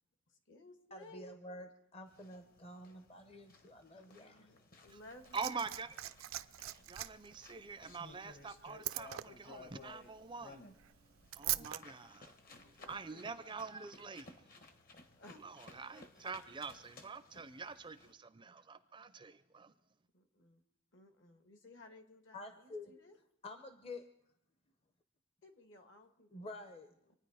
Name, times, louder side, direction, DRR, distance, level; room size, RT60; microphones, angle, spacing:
voice 1, 0.3-1.3 3.6-5.8 12.5-13.5 15.2-15.8 20.1-20.7 20.9-23.2 25.4-26.6 27.1-27.2, left 2 dB, 60° left, 6 dB, 1.8 m, -59 dB
voice 2, 0.9-4.5 11.6-11.7 22.3-22.9 23.4-24.1 26.3-27.1, left 2 dB, 30° left, 8 dB, 0.8 m, -49 dB
sound 1, 2.1-18.1, left 3 dB, 45° left, 1.2 m, -59 dB
Liquid, 4.9-11.8 12.9-13.0, right 15 dB, 80° right, 0.5 m, -43 dB
voice 3, 5.3-5.9 6.9-10.7 11.4-14.4 15.4-19.7, right 5 dB, 25° right, 12 dB, 0.5 m, -45 dB
25.5 x 9.7 x 4.9 m, 0.77 s
head